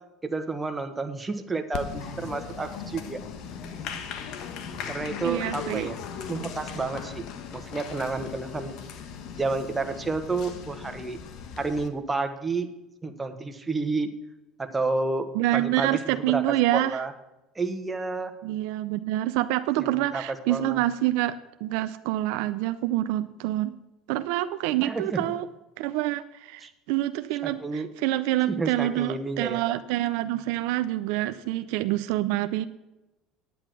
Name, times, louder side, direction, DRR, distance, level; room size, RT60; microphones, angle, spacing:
voice 1, 0.2-3.2 3.8-3.9 4.9-6.0 6.3-7.2 7.5-8.8 9.4-11.2 11.6-12.7 13.0-14.1 14.6-15.3 15.5-16.4 16.7-17.1 17.5-18.3 20.1-20.2 20.5-20.8 24.8-25.2 26.6-26.7 27.4-27.9 28.5-29.7, right 3 dB, 15° right, 7 dB, 1.3 m, -30 dB
Applause, 1.7-11.9, left 6 dB, 65° left, 1.3 m, -38 dB
voice 2, 5.2-5.9 15.3-17.0 18.4-21.3 21.6-23.8 24.1-25.5 25.8-32.6, right 15 dB, 75° right, 11 dB, 0.5 m, -27 dB
10.0 x 8.8 x 6.1 m, 0.97 s
supercardioid pair, 100°, 0 cm